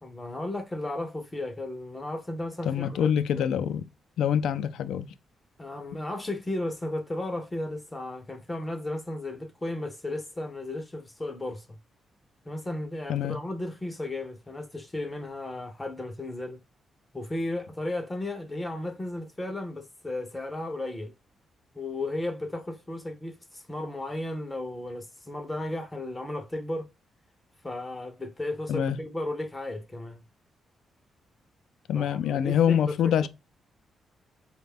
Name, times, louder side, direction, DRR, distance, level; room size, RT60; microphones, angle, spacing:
voice 1, 0.0-3.5 5.6-11.7 12.5-16.6 17.1-21.1 21.7-26.9 27.6-30.2 31.9-33.3, left 1 dB, 15° left, 0.5 m, -34 dB
voice 2, 2.6-3.8 4.2-5.1 13.1-13.4 28.7-29.0 31.9-33.3, left 9 dB, 85° left, 0.3 m, -25 dB
5.0 x 2.2 x 3.4 m
wide cardioid pair, 170°, 0 cm